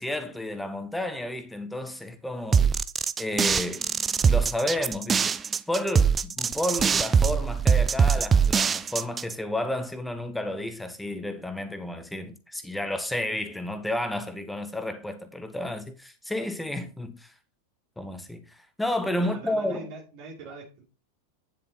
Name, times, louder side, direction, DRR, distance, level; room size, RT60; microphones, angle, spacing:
voice 1, 0.0-2.6 3.2-3.9 4.2-5.4 5.7-17.3 18.0-19.9, left 1 dB, 5° left, 1.6 m, -31 dB
sound 1, 2.5-9.3, right 6 dB, 20° right, 0.6 m, -22 dB
voice 2, 19.2-20.8, right 3 dB, 45° right, 3.1 m, -42 dB
10.0 x 7.5 x 4.3 m
figure-of-eight pair, 90°, 0 cm